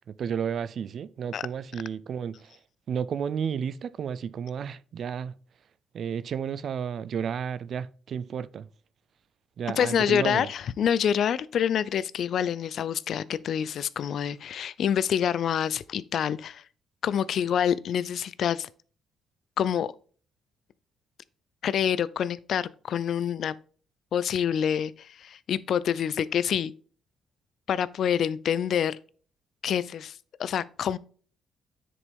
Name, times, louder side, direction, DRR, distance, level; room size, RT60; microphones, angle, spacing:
voice 1, 0.2-2.6 2.9-5.3 5.9-8.7 9.6-10.5, right 7 dB, 60° right, 0.5 m, -32 dB
voice 2, 9.8-16.6 17.0-18.7 19.6-19.9 21.6-23.5 24.1-26.7 27.7-29.0 29.6-31.0, left 8 dB, 65° left, 0.4 m, -27 dB
9.8 x 5.1 x 3.5 m
cardioid pair, 100°, 0 cm